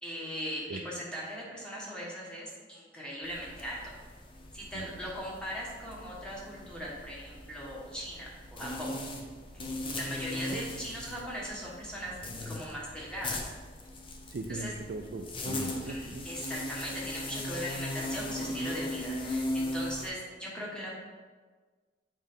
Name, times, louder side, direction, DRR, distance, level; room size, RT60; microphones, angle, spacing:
voice 1, 0.0-3.9 4.5-8.9 9.5-9.6 10.0-12.1 12.4-13.5 14.5-14.7 15.8-20.9, equal, 5° left, -5 dB, 1.5 m, -39 dB
sound 1, 3.2-20.1, left 1 dB, 30° left, 0.7 m, -38 dB
voice 2, 14.3-16.3, right 2 dB, 60° right, 3 dB, 0.4 m, -39 dB
7.5 x 4.6 x 3.6 m, 1.4 s
head